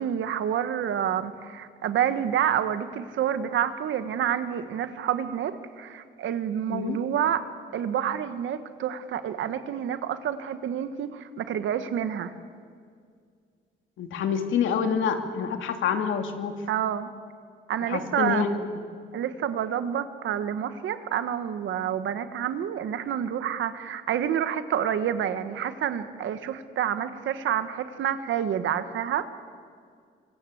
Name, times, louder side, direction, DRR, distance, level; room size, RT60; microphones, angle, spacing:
voice 1, 0.0-7.4 7.7-12.3 16.7-17.1 17.7-18.4 19.1-29.3, right 9 dB, 75° right, 11 dB, 1.5 m, -28 dB
voice 2, 14.0-16.5 17.8-18.5, left 7 dB, 80° left, 6 dB, 2.4 m, -27 dB
25.0 x 23.5 x 8.0 m, 2.1 s
cardioid pair, 90°, 20 cm